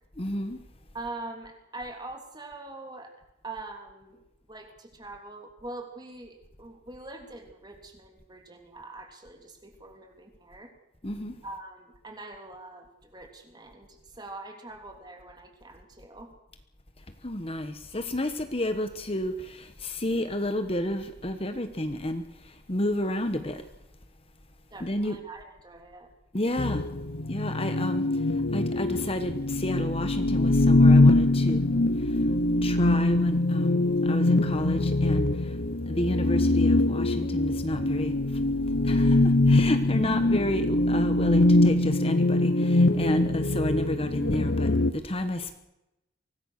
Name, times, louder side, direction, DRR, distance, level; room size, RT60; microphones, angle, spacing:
voice 1, 0.2-0.6 11.0-11.3 17.2-23.6 24.8-25.2 26.3-26.8 27.3-31.6 32.0-32.3 32.6-35.6 35.9-38.4 38.8-45.6, left 1 dB, 30° left, 8 dB, 1.2 m, -31 dB
voice 2, 0.9-3.1 3.4-4.2 4.5-10.7 11.4-16.3 24.7-26.1, right 2 dB, 20° right, 4 dB, 3.3 m, -43 dB
sound 1, 26.6-44.9, left 2 dB, 55° left, 0.9 m, -23 dB
24.5 x 18.5 x 6.6 m, 0.91 s
head